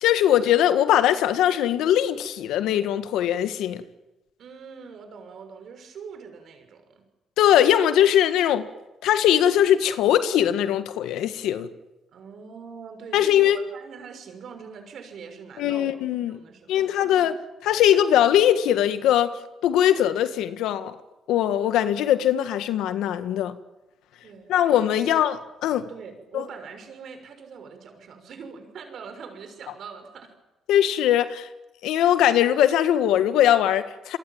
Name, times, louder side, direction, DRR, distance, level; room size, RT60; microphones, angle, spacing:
voice 1, 0.0-3.8 7.4-8.7 9.0-11.7 13.1-13.6 15.6-16.4 16.7-17.3 17.7-19.4 19.6-21.0 21.3-23.6 24.5-25.4 25.6-25.9 26.3-26.4 30.7-31.5 31.8-34.2, left 11 dB, 90° left, 1.7 m, -21 dB
voice 2, 4.4-7.1 12.1-15.9 16.2-17.3 24.2-25.2 25.9-30.3, right 6 dB, 65° right, 6.3 m, -43 dB
28.0 x 23.5 x 8.9 m
cardioid pair, 90°, 0 cm